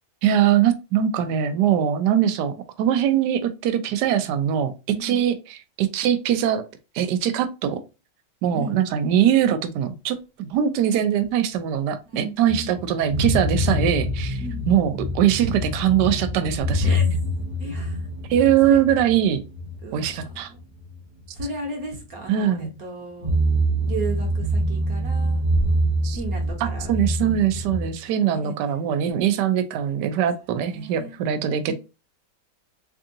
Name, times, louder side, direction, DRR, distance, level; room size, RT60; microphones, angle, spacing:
voice 1, 0.2-4.7 5.0-6.6 6.9-7.8 8.4-17.0 18.3-19.4 19.9-20.5 22.3-22.8 26.0-26.2 26.6-31.7, right 9 dB, 80° right, 1.2 m, -22 dB
voice 2, 12.1-12.7 14.4-14.7 15.4-15.5 16.8-17.1 17.6-18.0 18.6-18.8 19.8-20.6 21.3-23.4 23.9-25.5 26.1-26.9 27.2-27.3 28.3-28.5 30.6-31.2 31.7-31.8, right 2 dB, 60° right, 1.4 m, -34 dB
sound 1, 12.5-21.0 21.4-21.5 23.2-27.9, equal, 40° right, 0.6 m, -25 dB
3.6 x 3.5 x 2.7 m
omnidirectional pair, 1.8 m